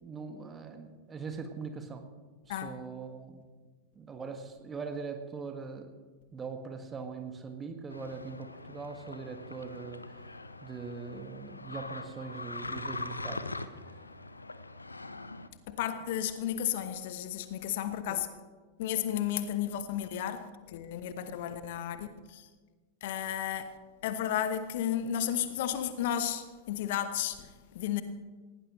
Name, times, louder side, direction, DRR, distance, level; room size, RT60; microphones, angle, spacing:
voice 1, 0.0-2.1 2.5-3.4 4.0-5.9 6.3-10.0 10.6-13.5 13.7-13.8 18.1-18.2, right 5 dB, 20° right, 1.8 m, -41 dB
sound 1, 7.9-15.5, left 2 dB, 80° left, 0.7 m, -42 dB
voice 2, 15.7-18.3 18.8-22.5 23.0-23.7 24.0-28.0, left 10 dB, 55° left, 1.0 m, -33 dB
19.5 x 17.5 x 3.2 m
figure-of-eight pair, 90°, 0 cm